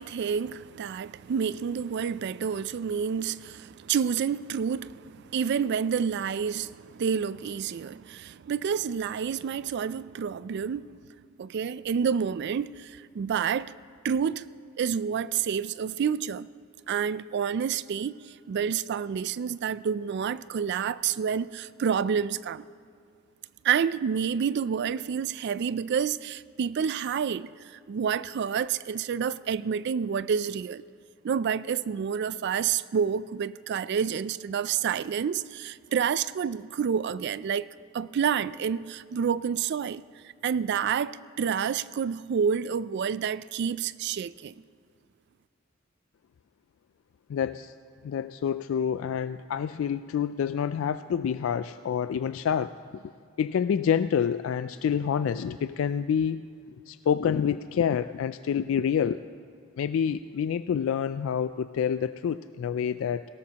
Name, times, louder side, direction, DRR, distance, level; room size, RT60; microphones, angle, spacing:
voice 1, 0.0-10.9 11.4-13.7 14.0-14.4 14.8-16.5 16.9-22.6 23.6-30.8 31.2-37.7 37.9-40.1 40.4-44.6, right 7 dB, 55° right, 0.3 m, -29 dB
voice 2, 47.3-47.7 48.0-53.0 53.4-56.4 56.9-59.2 59.8-63.3, left 7 dB, 70° left, 0.3 m, -27 dB
19.0 x 17.0 x 2.9 m
head